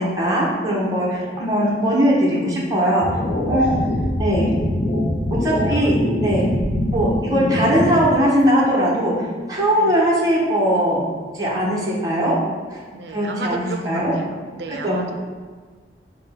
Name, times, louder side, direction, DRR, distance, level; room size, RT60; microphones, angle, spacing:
voice 1, 0.0-3.1 3.5-3.7 4.2-4.5 5.3-6.0 6.2-6.5 6.9-11.0 11.3-12.4 12.7-12.8 13.1-14.1 14.7-15.0, equal, 20° right, -6 dB, 0.9 m, -20 dB
sound 1, 3.0-8.0, left 1 dB, 45° left, 0.6 m, -23 dB
voice 2, 5.5-5.9 9.7-10.1 12.9-15.2, right 3 dB, 75° right, 4 dB, 0.5 m, -34 dB
6.1 x 2.3 x 3.5 m, 1.5 s
head